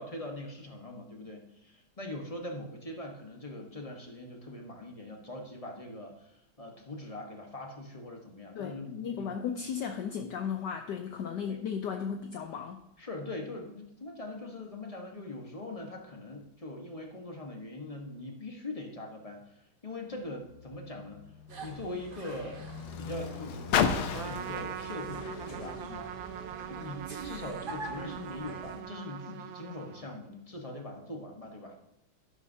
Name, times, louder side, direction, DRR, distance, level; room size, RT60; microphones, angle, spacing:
voice 1, 0.0-9.4 11.4-11.6 13.0-21.2 21.6-22.6 23.0-26.1 26.7-31.8, left 2 dB, 20° left, 2 dB, 1.0 m, -42 dB
voice 2, 8.6-12.8, left 7 dB, 65° left, 5 dB, 1.2 m, -35 dB
Car, 20.1-26.7 27.5-27.6, left 8 dB, 85° left, 1.6 m, -35 dB
sound 1, 21.5-28.8, right 3 dB, 35° right, 0.9 m, -45 dB
Trumpet, 24.1-30.3, right 11 dB, 75° right, 1.3 m, -42 dB
12.5 x 11.0 x 2.7 m, 0.84 s
omnidirectional pair, 2.3 m